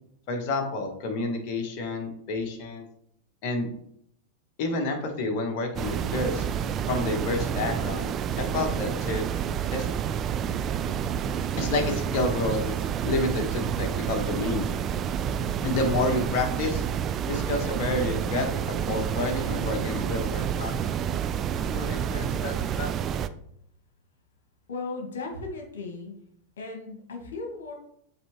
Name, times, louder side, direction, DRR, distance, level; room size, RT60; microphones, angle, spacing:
voice 1, 0.3-2.8 3.4-3.7 4.6-6.4 6.9-8.1 8.4-9.2 9.7-9.9 10.8-11.0 11.6-12.8 13.0-14.7 15.6-16.8 17.2-20.9 21.6-23.0, left 2 dB, 45° left, 3 dB, 1.3 m, -29 dB
sound 1, 5.8-23.3, right 8 dB, 30° right, 0.3 m, -29 dB
voice 2, 24.7-26.1 26.6-27.7, left 3 dB, 65° left, 2 dB, 1.5 m, -36 dB
7.5 x 4.3 x 3.0 m, 0.70 s
figure-of-eight pair, 90°, 0 cm